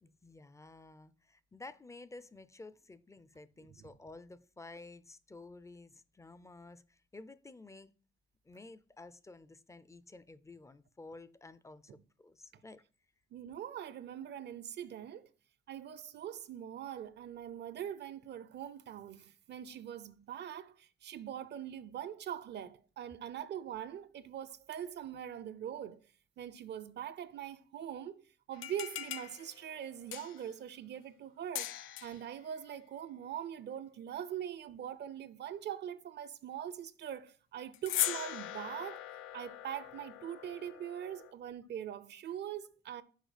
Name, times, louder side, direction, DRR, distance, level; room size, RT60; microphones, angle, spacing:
voice 1, 0.0-7.9 8.4-12.8, left 2 dB, 15° left, 0.5 m, -52 dB
voice 2, 13.3-15.3 15.7-26.0 26.4-28.2 28.5-31.7 32.0-39.0 39.3-43.0, right 10 dB, 60° right, 0.6 m, -42 dB
sound 1, 28.5-30.6 31.6-32.3 37.7-41.3, left 13 dB, 90° left, 0.4 m, -40 dB
6.4 x 4.6 x 5.0 m
cardioid pair, 90°, 20 cm